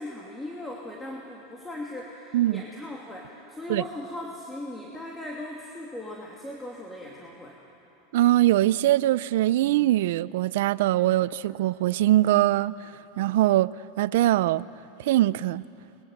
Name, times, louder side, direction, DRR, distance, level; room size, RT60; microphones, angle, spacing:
voice 1, 0.0-7.5, left 1 dB, 10° left, 2.7 m, -38 dB
voice 2, 8.1-12.8 13.2-14.6 15.0-15.6, right 15 dB, 75° right, 0.5 m, -22 dB
26.5 x 22.0 x 8.0 m
supercardioid pair, 130°, 0 cm